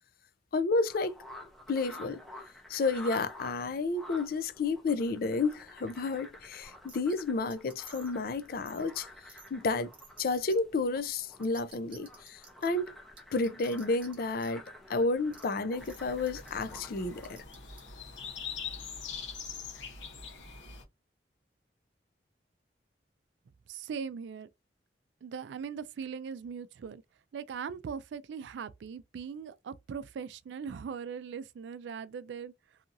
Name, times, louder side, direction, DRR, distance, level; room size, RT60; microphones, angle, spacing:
voice 1, 0.5-1.1 1.7-2.2 2.7-9.1 9.5-9.9 10.2-12.9 13.3-14.6 14.9-17.4, left 3 dB, 50° left, 0.4 m, -31 dB
sound 1, 0.9-17.4, left 1 dB, ahead, 0.7 m, -51 dB
sound 2, 6.9-7.2 7.5-8.2 8.7-8.8 9.3-9.5 9.9-10.6 11.1-11.2 11.4-12.7 13.2-14.1 14.4-14.5 15.3-15.4 15.9-16.0 16.3-16.6 17.2-17.8, right 4 dB, 30° right, 0.9 m, -52 dB
sound 3, 15.8-20.8, left 6 dB, 85° left, 0.9 m, -43 dB
voice 2, 23.7-24.5 25.2-27.0 27.3-32.5, right 6 dB, 75° right, 0.3 m, -40 dB
2.7 x 2.6 x 2.4 m
head